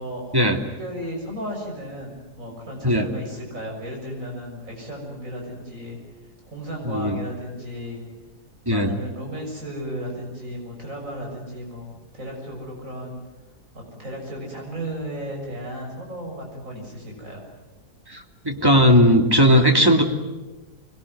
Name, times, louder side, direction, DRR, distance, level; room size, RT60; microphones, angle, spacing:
voice 1, 0.0-0.3 0.8-6.0 6.5-8.0 8.7-13.2 13.7-17.4, equal, 55° right, 0 dB, 7.1 m, -34 dB
voice 2, 6.8-7.2 8.7-8.9 18.1-20.0, equal, 15° right, 4 dB, 2.5 m, -17 dB
25.5 x 22.0 x 9.5 m, 1.1 s
omnidirectional pair, 1.7 m